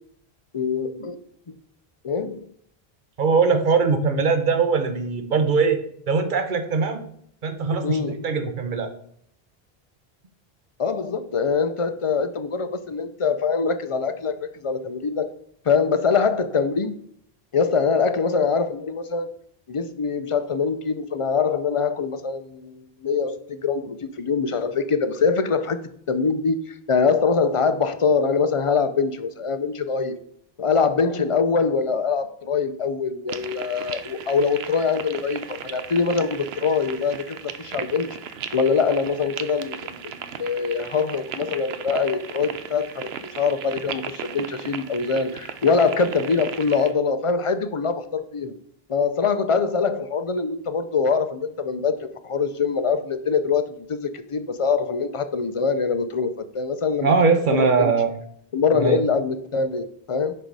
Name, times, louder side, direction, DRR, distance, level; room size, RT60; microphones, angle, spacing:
voice 1, 0.5-1.2 1.5-1.6 2.0-2.5 7.8-8.2 10.8-15.3 15.7-16.9 17.5-19.3 19.7-25.8 26.1-30.1 30.6-38.1 38.5-48.5 48.9-57.9 58.5-60.3, left 5 dB, 40° left, 0.6 m, -23 dB
voice 2, 3.2-5.8 6.1-7.0 7.4-8.9 57.0-58.1 58.7-59.0, right 5 dB, 55° right, 1.1 m, -21 dB
sound 1, 33.3-46.9, right 8 dB, 85° right, 0.9 m, -36 dB
6.4 x 5.5 x 4.7 m
omnidirectional pair, 1.0 m